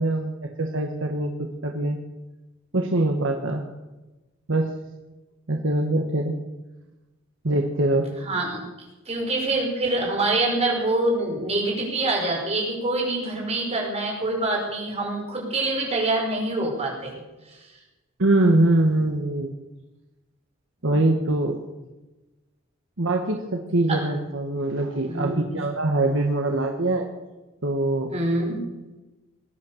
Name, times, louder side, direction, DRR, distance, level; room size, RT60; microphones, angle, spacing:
voice 1, 0.0-2.0 2.7-3.6 4.5-4.7 5.5-6.3 7.4-8.1 18.2-19.5 20.8-21.6 23.0-27.1 27.6-28.1, right 2 dB, 70° right, 3 dB, 1.4 m, -23 dB
voice 2, 8.2-8.6 9.1-17.1 20.8-21.0 23.9-24.0 25.0-25.5 28.1-28.6, right 2 dB, 30° right, -2 dB, 5.8 m, -25 dB
20.5 x 9.7 x 7.2 m, 1.1 s
head